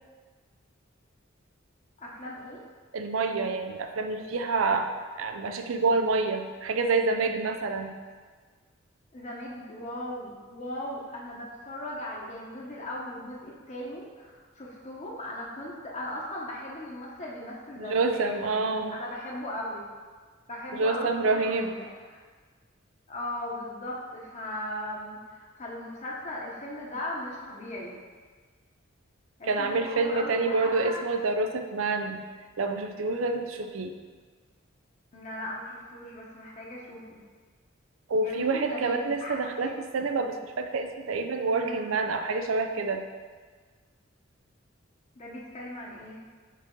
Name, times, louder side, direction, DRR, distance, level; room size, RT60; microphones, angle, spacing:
voice 1, 2.0-2.6 9.1-19.8 20.5-22.2 23.1-27.9 29.4-30.9 35.1-37.2 38.2-39.7 41.5-41.9 45.2-46.2, left 1 dB, 35° left, -4 dB, 0.9 m, -38 dB
voice 2, 2.9-4.9 5.2-8.0 17.8-19.0 20.7-21.7 29.5-32.2 32.6-33.9 38.1-43.1, right 3 dB, 80° right, 6 dB, 0.5 m, -27 dB
5.4 x 5.0 x 3.7 m, 1.5 s
head